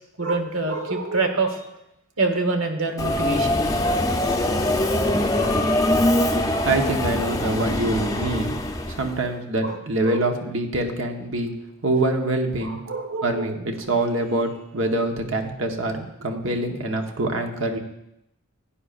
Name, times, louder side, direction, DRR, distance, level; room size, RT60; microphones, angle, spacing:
voice 1, 0.2-1.7 2.2-4.1 5.4-5.6 6.0-6.2 9.6-10.2 12.6-13.9, right 3 dB, 90° right, 5 dB, 1.3 m, -27 dB
Subway metro underground, 3.0-9.2, left 1 dB, 15° left, 0.6 m, -23 dB
voice 2, 6.3-8.6 8.9-11.5 11.8-12.8 13.2-17.8, right 2 dB, 65° right, 4 dB, 1.1 m, -25 dB
15.5 x 9.8 x 2.5 m, 0.84 s
head